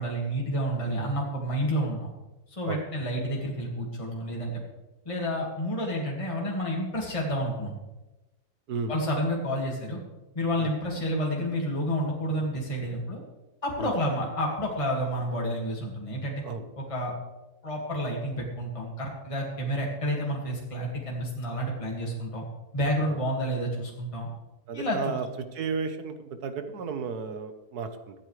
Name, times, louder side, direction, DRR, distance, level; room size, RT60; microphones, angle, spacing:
voice 1, 0.0-2.1 2.5-4.6 5.1-7.7 8.9-10.0 10.3-13.2 13.6-16.4 16.8-17.1 17.6-22.4 22.7-24.3 24.7-25.2, equal, 20° left, -2 dB, 2.1 m, -30 dB
voice 2, 24.7-25.3 25.5-28.1, right 5 dB, 85° right, 8 dB, 1.6 m, -33 dB
24.5 x 8.7 x 3.3 m, 1.1 s
omnidirectional pair, 1.6 m